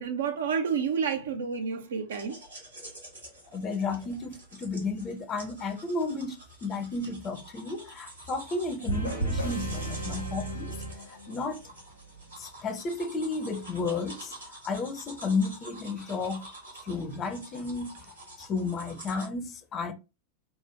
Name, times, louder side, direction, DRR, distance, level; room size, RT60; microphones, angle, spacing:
voice 1, 0.0-2.4, right 6 dB, 65° right, 0.5 m, -29 dB
sound 1, 2.1-19.3, right 1 dB, 80° right, 1.2 m, -48 dB
voice 2, 3.5-10.7 11.1-11.6 12.4-16.5 16.8-17.9 18.4-19.9, left 3 dB, 25° left, 0.5 m, -33 dB
sound 2, 8.9-11.7, right 2 dB, 90° left, 1.3 m, -33 dB
3.2 x 2.1 x 3.2 m
figure-of-eight pair, 90°, 0 cm